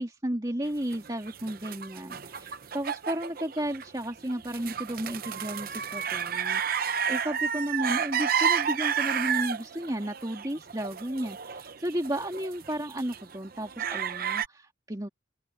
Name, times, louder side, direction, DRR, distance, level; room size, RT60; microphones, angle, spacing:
voice 1, 0.0-15.1, right 1 dB, 20° right, 2.4 m, -33 dB
sound 1, 0.9-14.5, right 7 dB, 45° right, 0.8 m, -31 dB
open air
head